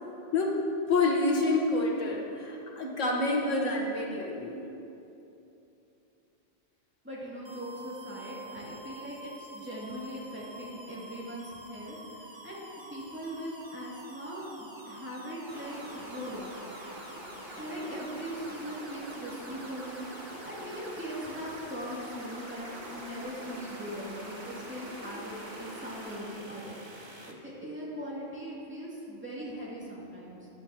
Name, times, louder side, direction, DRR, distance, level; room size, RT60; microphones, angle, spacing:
voice 1, 0.9-4.7, left 2 dB, 85° left, -1 dB, 1.6 m, -28 dB
voice 2, 7.0-16.6 17.6-30.4, equal, 10° right, -8 dB, 2.4 m, -40 dB
sound 1, 7.4-27.3, right 1 dB, 25° right, 0.8 m, -48 dB
sound 2, 15.5-26.2, right 1 dB, 55° right, 2.6 m, -45 dB
15.0 x 10.5 x 2.9 m, 2.8 s
omnidirectional pair, 1.3 m